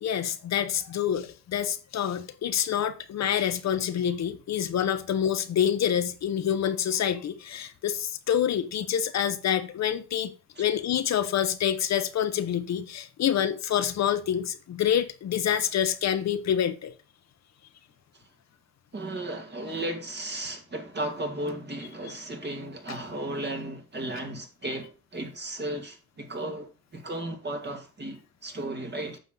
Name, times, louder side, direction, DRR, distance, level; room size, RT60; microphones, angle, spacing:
voice 1, 0.0-10.3 10.6-16.9, left 9 dB, 60° left, 1.0 m, -27 dB
voice 2, 18.9-29.2, right 1 dB, 35° right, 2.3 m, -35 dB
9.4 x 6.4 x 3.9 m
cardioid pair, 90°, 30 cm